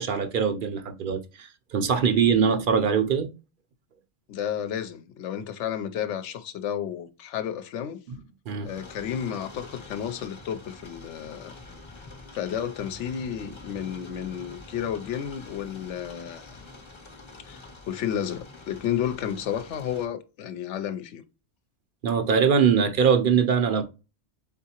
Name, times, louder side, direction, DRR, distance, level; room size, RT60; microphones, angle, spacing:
voice 1, 0.0-3.3 8.5-8.7 22.0-23.8, right 6 dB, 55° right, 0.7 m, -22 dB
voice 2, 4.3-8.0 8.6-11.5 12.3-16.6 17.5-17.6 17.9-21.2, left 9 dB, 80° left, 0.9 m, -32 dB
sound 1, 8.7-20.1, left 2 dB, 30° left, 0.7 m, -46 dB
4.1 x 3.6 x 2.8 m
omnidirectional pair, 1.2 m